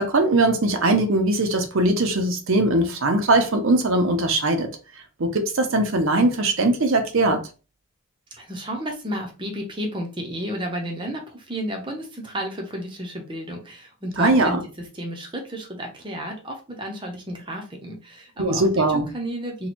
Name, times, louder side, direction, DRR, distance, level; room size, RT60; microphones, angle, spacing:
voice 1, 0.0-4.7 5.2-7.4 14.2-14.6 18.4-19.1, right 2 dB, 75° right, 0.7 m, -20 dB
voice 2, 8.4-19.7, equal, 25° right, 0.7 m, -32 dB
2.9 x 2.3 x 4.2 m
head